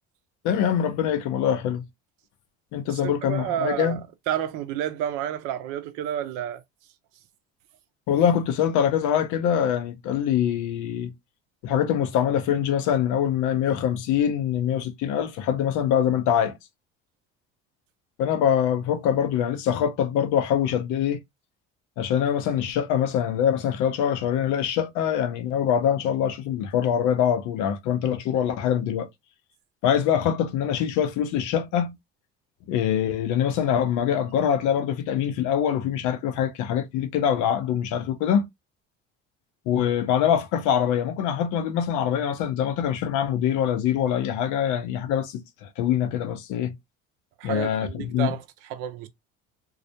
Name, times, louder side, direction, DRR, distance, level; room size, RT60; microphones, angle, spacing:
voice 1, 0.4-1.8 2.7-4.0 8.1-11.1 11.6-16.5 18.2-21.2 22.0-29.1 29.8-32.0 32.7-38.5 39.7-46.7 47.4-48.3, left 9 dB, 65° left, 0.7 m, -24 dB
voice 2, 3.0-4.0 4.3-6.6 47.4-49.1, right 10 dB, 75° right, 0.6 m, -30 dB
2.3 x 2.1 x 2.7 m
hypercardioid pair, 70°, 32 cm